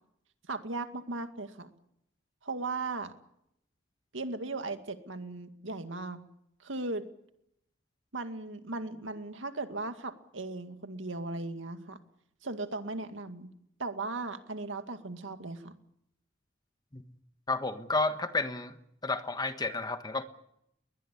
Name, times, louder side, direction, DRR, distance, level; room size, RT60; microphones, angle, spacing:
voice 1, 0.5-1.7 2.4-3.1 4.1-6.2 6.6-7.0 8.1-12.0 12.4-13.5 13.8-15.7, right 3 dB, 75° right, 8 dB, 2.1 m, -37 dB
voice 2, 17.5-18.8 19.0-20.2, left 3 dB, 20° left, 9 dB, 1.4 m, -31 dB
21.5 x 21.0 x 8.4 m, 0.77 s
head